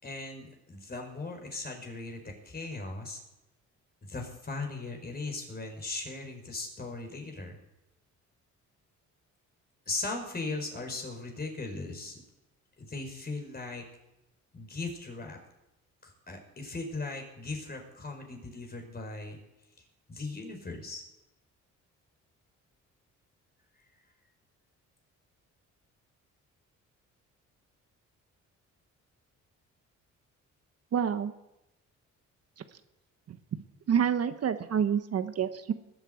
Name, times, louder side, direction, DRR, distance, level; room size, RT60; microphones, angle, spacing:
voice 1, 0.0-3.2 4.0-7.6 9.9-12.2 12.8-13.8 14.5-15.4 16.0-19.4 20.1-21.0, left 3 dB, 30° left, 3 dB, 5.0 m, -38 dB
voice 2, 30.9-31.3 33.3-33.4 33.9-35.7, right 8 dB, 55° right, 9 dB, 1.3 m, -27 dB
19.5 x 8.8 x 7.9 m, 0.93 s
cardioid pair, 90°, 30 cm